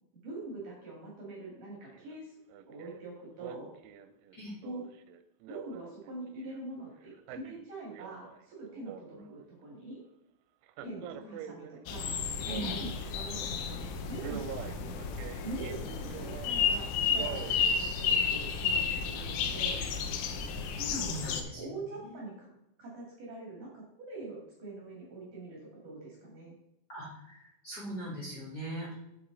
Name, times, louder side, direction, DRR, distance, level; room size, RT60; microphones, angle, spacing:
voice 1, 0.2-2.3 2.7-3.7 4.6-4.9 5.5-10.0 10.8-14.9 15.4-19.8 20.8-22.5 22.8-26.6, right 2 dB, 50° right, -4 dB, 3.2 m, -44 dB
Male speech man speaking, 1.9-2.2 2.5-3.0 3.4-6.6 7.1-8.4 8.7-9.5 10.7-13.1 13.5-13.7 14.2-16.6 17.0-17.8 18.2-18.3, right 9 dB, 85° right, 3.0 m, -45 dB
voice 2, 10.8-11.3 12.4-12.8 20.8-22.2 26.9-28.9, equal, 25° left, -8 dB, 3.4 m, -41 dB
sound 1, 11.9-21.4, left 6 dB, 85° left, 3.4 m, -32 dB
8.0 x 7.9 x 3.9 m, 0.87 s
omnidirectional pair, 5.5 m